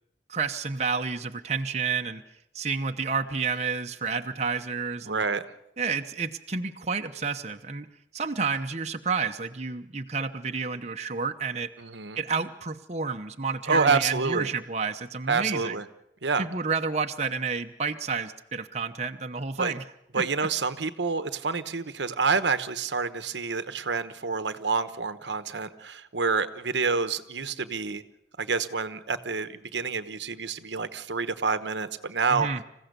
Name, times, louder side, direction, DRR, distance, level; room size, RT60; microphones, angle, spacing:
voice 1, 0.3-2.2 2.5-5.2 5.8-7.9 8.1-11.7 12.2-15.8 16.4-19.8 20.1-20.5 32.3-32.6, right 5 dB, 40° right, 5 dB, 0.9 m, -30 dB
voice 2, 5.1-5.4 11.8-12.2 13.7-14.5 15.3-15.8 16.2-16.4 19.6-19.7 20.1-28.0 28.4-32.5, right 4 dB, 85° right, 11 dB, 1.1 m, -28 dB
27.0 x 15.5 x 6.8 m, 0.79 s
head